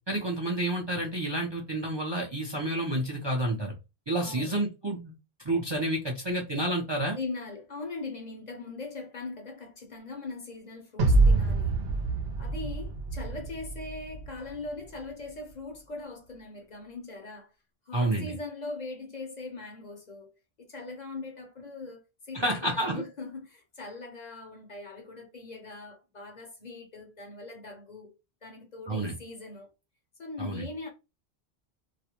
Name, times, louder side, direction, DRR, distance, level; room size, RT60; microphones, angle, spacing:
voice 1, 0.1-3.7 4.1-5.1 5.4-7.2 17.9-18.3 22.3-23.0 28.9-29.2 30.4-30.7, right 1 dB, 35° right, 0.5 m, -29 dB
voice 2, 4.2-4.6 7.1-11.8 12.4-17.5 17.9-20.3 20.6-28.1 28.4-29.7 30.2-30.9, left 3 dB, 50° left, 0.7 m, -41 dB
sound 1, 11.0-14.3, right 3 dB, 75° right, 0.8 m, -25 dB
2.4 x 2.0 x 2.8 m
omnidirectional pair, 1.1 m